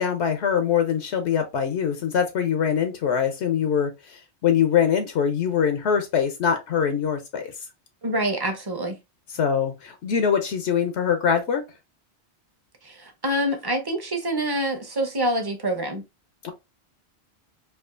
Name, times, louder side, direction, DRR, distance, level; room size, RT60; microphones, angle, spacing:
voice 1, 0.0-3.9 4.4-7.5 9.3-11.6 16.4-16.5, left 7 dB, 80° left, 1.0 m, -23 dB
voice 2, 8.0-9.0 12.8-16.0, right 1 dB, 25° right, 0.7 m, -26 dB
4.6 x 2.4 x 2.4 m
omnidirectional pair, 1.1 m